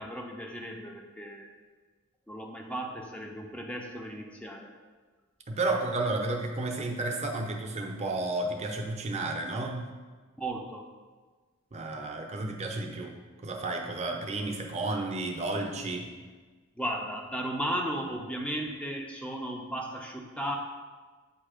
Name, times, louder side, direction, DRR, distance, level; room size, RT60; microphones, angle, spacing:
voice 1, 0.0-1.5 2.3-4.7 10.4-10.9 16.8-20.6, right 1 dB, 5° left, 1 dB, 0.6 m, -35 dB
voice 2, 5.5-9.8 11.7-13.1 13.4-16.1, right 2 dB, 30° right, 1 dB, 0.6 m, -32 dB
7.3 x 2.8 x 4.9 m, 1.4 s
head